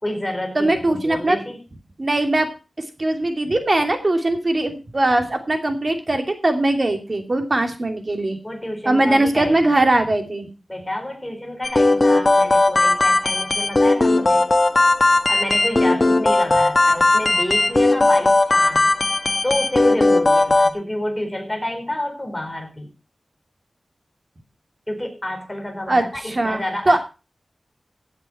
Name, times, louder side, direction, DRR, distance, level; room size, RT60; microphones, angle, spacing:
voice 1, 0.0-1.6 8.4-9.7 10.7-14.5 15.3-18.9 19.4-22.9 24.9-27.0, left 1 dB, 15° left, 3 dB, 4.5 m, -29 dB
voice 2, 0.5-1.4 2.0-2.5 3.0-8.4 8.9-10.5 25.9-26.6 26.9-27.0, right 2 dB, 40° right, 5 dB, 2.7 m, -20 dB
sound 1, 11.6-20.7, left 2 dB, 40° left, 1.2 m, -17 dB
16.0 x 8.1 x 4.3 m, 0.31 s
wide cardioid pair, 90°, 0 cm